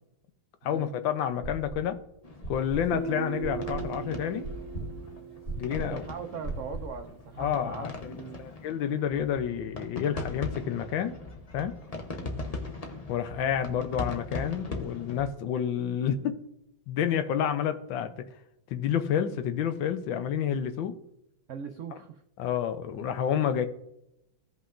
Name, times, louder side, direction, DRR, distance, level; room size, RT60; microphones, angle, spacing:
voice 1, 0.6-2.0 2.5-4.5 4.8-4.9 5.6-6.0 7.4-11.1 11.5-11.7 13.1-16.4 16.9-18.3 18.7-20.9 22.4-23.7, left 9 dB, 75° left, 9 dB, 1.4 m, -29 dB
sound 1, 1.4-2.0 2.4-7.0, right 2 dB, 25° left, 1.7 m, -38 dB
sound 2, 2.2-15.3, left 2 dB, 45° left, 0.4 m, -40 dB
Guitar, 2.9-6.5, right 6 dB, 60° right, 1.4 m, -39 dB
voice 2, 5.7-8.4 12.1-12.3 21.5-22.2, right 6 dB, 85° right, 5 dB, 0.6 m, -40 dB
16.0 x 5.4 x 2.5 m, 0.82 s
omnidirectional pair, 2.1 m